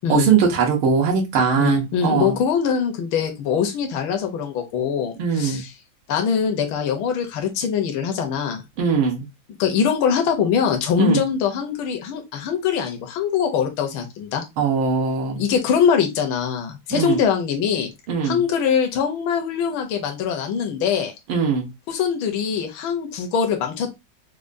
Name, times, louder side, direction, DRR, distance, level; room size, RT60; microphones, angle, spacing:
voice 1, 0.1-2.3 5.2-5.6 8.8-9.3 11.0-11.2 14.6-15.4 16.9-17.2 18.1-18.4 21.3-21.7, right 6 dB, 90° right, 1.8 m, -20 dB
voice 2, 1.6-5.7 6.1-8.6 9.6-14.4 15.3-17.9 18.2-21.1 21.9-23.9, left 7 dB, 80° left, 1.5 m, -22 dB
4.9 x 2.2 x 2.5 m
omnidirectional pair, 2.2 m